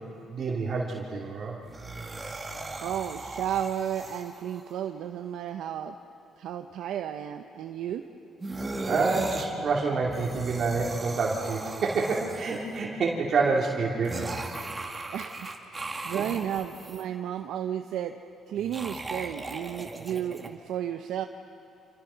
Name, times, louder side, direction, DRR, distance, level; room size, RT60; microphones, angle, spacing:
voice 1, 0.0-1.6 8.8-14.3 16.1-16.2, right 4 dB, 55° right, -3 dB, 2.9 m, -28 dB
sound 1, 1.6-4.7 8.4-9.5 10.0-12.8 14.0-17.0 18.5-20.5, right 2 dB, 25° right, 2.5 m, -37 dB
voice 2, 2.8-6.0 6.4-8.0 15.1-18.1 18.5-21.3, right 10 dB, 85° right, 6 dB, 0.8 m, -33 dB
28.5 x 27.5 x 5.8 m, 2.8 s
cardioid pair, 90°, 0 cm